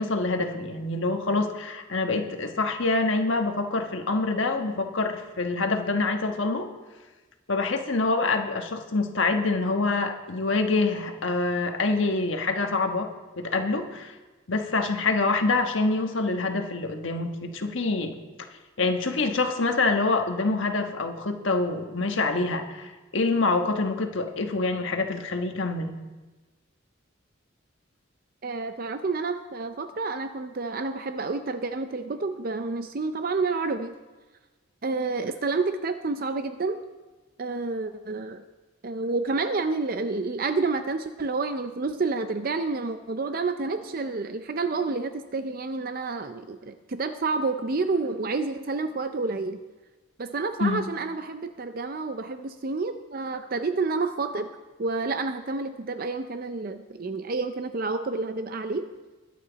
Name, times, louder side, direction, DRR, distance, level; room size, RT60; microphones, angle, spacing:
voice 1, 0.0-6.7 7.5-13.1 13.4-14.1 14.5-18.1 18.8-25.9 50.6-50.8, left 3 dB, 70° left, 4 dB, 1.4 m, -26 dB
voice 2, 28.4-33.9 34.8-36.8 37.4-38.4 38.8-49.6 50.2-54.5 54.8-58.9, right 3 dB, 45° right, 9 dB, 0.5 m, -29 dB
22.0 x 8.4 x 4.0 m, 1.2 s
head